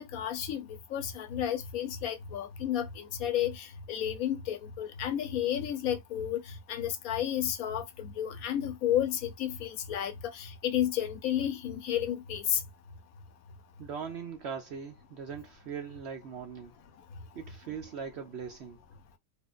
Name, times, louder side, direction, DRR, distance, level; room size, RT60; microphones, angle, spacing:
voice 1, 0.0-12.6, left 10 dB, 75° left, 1.1 m, -32 dB
voice 2, 13.8-16.7 17.3-18.8, right 6 dB, 65° right, 0.7 m, -40 dB
4.3 x 2.5 x 2.4 m
omnidirectional pair, 1.5 m